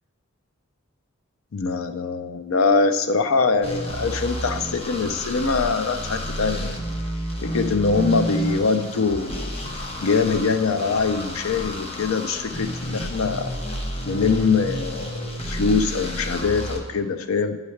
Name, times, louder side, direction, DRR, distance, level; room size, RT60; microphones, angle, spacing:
voice 1, 1.5-6.7 7.4-13.5 14.0-17.6, left 4 dB, 75° left, 9 dB, 0.5 m, -23 dB
sound 1, 3.6-16.8, equal, 30° left, 0.8 m, -30 dB
9.3 x 3.2 x 5.6 m, 1.3 s
head